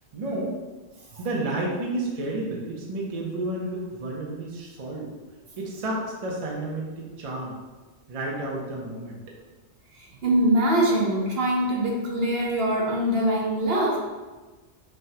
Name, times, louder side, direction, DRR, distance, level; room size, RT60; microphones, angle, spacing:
voice 1, 0.1-0.6 1.2-5.1 5.6-7.6 8.1-9.2, right 2 dB, 40° right, -2 dB, 0.6 m, -31 dB
voice 2, 10.2-14.0, right 1 dB, 60° right, -1 dB, 0.8 m, -23 dB
5.4 x 2.2 x 2.8 m, 1.2 s
omnidirectional pair, 1.2 m